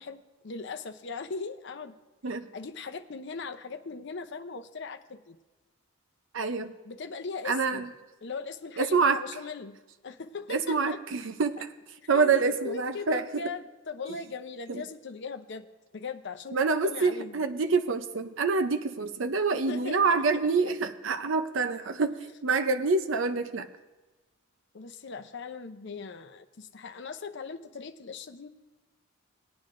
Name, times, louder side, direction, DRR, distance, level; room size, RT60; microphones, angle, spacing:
voice 1, 0.0-1.9 2.5-5.4 6.8-7.9 8.2-11.0 12.1-15.7 15.9-17.4 19.5-20.7 24.7-28.5, left 4 dB, 60° left, 9 dB, 0.7 m, -39 dB
voice 2, 6.3-6.7 7.5-7.9 8.8-9.2 10.5-11.6 12.1-13.2 14.7-14.8 16.5-22.1 22.4-23.7, right 4 dB, 65° right, 9 dB, 0.6 m, -26 dB
20.0 x 9.3 x 2.6 m, 1.2 s
head